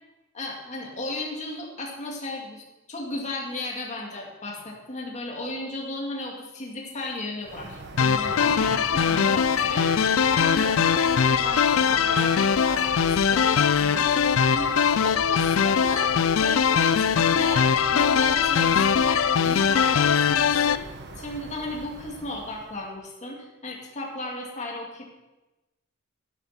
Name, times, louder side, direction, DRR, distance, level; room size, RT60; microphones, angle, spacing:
voice 1, 0.3-2.6 2.9-9.9 10.3-14.7 15.0-16.1 16.4-20.9 21.2-25.1, left 2 dB, 35° left, -1 dB, 2.3 m, -35 dB
sound 1, 7.4-22.9, right 2 dB, 60° right, 1.1 m, -40 dB
sound 2, 8.0-20.8, left 7 dB, 85° left, 0.4 m, -21 dB
sound 3, 8.2-13.1, right 1 dB, 25° right, 1.7 m, -44 dB
10.0 x 9.0 x 5.9 m, 1.1 s
head